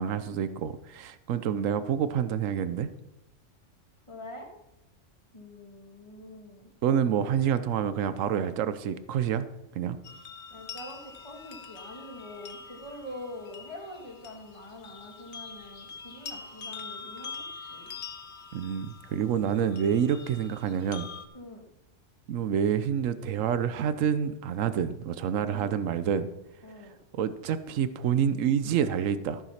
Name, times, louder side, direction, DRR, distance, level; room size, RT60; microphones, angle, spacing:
voice 1, 0.0-2.9 6.8-9.4 9.7-10.0 18.5-21.1 22.3-26.3 27.1-29.4, right 8 dB, 85° right, 12 dB, 1.1 m, -28 dB
voice 2, 4.1-4.5 5.3-6.7 10.5-18.0 21.3-21.7 25.4-25.8 26.6-27.0, left 1 dB, 25° left, 1 dB, 2.1 m, -44 dB
sound 1, 10.0-21.3, left 5 dB, 65° left, 1.2 m, -44 dB
14.0 x 7.4 x 5.7 m, 0.92 s
omnidirectional pair, 1.3 m